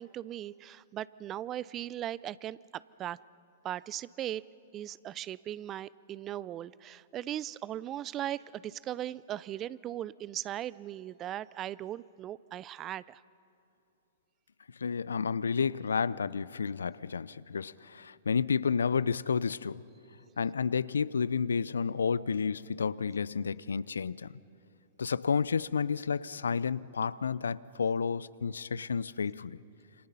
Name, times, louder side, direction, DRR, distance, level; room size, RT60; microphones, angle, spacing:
voice 1, 0.0-3.2 3.6-4.4 4.7-13.2, right 12 dB, 30° right, 0.4 m, -38 dB
voice 2, 14.8-19.8 20.4-24.3 25.0-29.6, left 6 dB, 75° left, 0.5 m, -31 dB
27.5 x 26.5 x 5.6 m
figure-of-eight pair, 105°, 0 cm